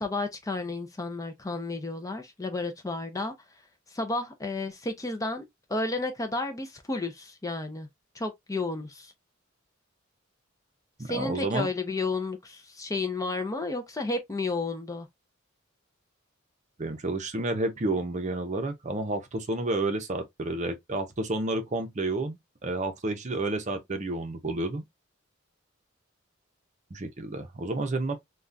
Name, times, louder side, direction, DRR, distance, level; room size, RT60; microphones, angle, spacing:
voice 1, 0.0-3.3 3.9-5.4 5.7-7.9 8.1-9.1 11.1-15.1, left 3 dB, 15° left, 0.5 m, -32 dB
voice 2, 11.0-11.7 16.8-24.8 26.9-28.1, right 2 dB, 35° right, 0.6 m, -30 dB
3.5 x 2.3 x 2.6 m
head